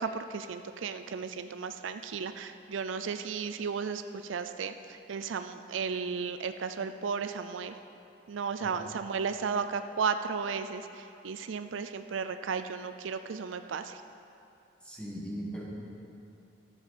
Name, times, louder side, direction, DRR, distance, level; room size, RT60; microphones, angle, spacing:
voice 1, 0.0-7.8 8.3-14.0, right 5 dB, 90° right, 9 dB, 0.4 m, -34 dB
voice 2, 14.8-15.6, equal, 5° left, -4 dB, 1.6 m, -39 dB
13.0 x 7.2 x 5.8 m, 2.6 s
head